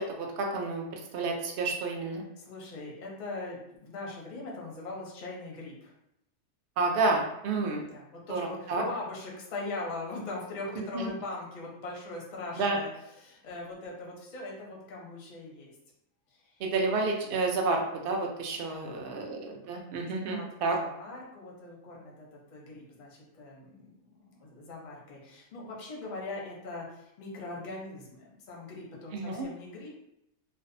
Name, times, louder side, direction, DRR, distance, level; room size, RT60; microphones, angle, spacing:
voice 1, 0.0-2.2 6.8-7.9 8.3-8.8 10.9-11.1 12.6-12.8 16.6-20.8 29.1-29.5, right 3 dB, 80° right, 1 dB, 0.4 m, -30 dB
voice 2, 2.4-5.9 7.9-12.9 13.2-15.7 16.3-16.6 18.7-19.2 20.2-29.9, left 2 dB, 45° left, -3 dB, 0.6 m, -41 dB
2.6 x 2.1 x 2.5 m, 0.83 s
omnidirectional pair, 1.5 m